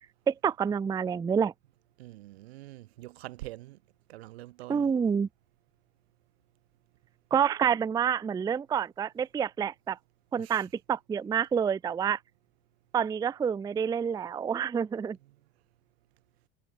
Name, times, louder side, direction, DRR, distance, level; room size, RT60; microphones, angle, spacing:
voice 1, 0.3-1.5 4.7-5.3 7.3-10.0 10.3-12.2 12.9-15.2, right 7 dB, 15° right, 0.3 m, -28 dB
voice 2, 2.0-3.8 4.1-4.9 10.4-10.7 15.2-15.3, right 17 dB, 80° right, 1.5 m, -45 dB
hypercardioid pair, 70°, 31 cm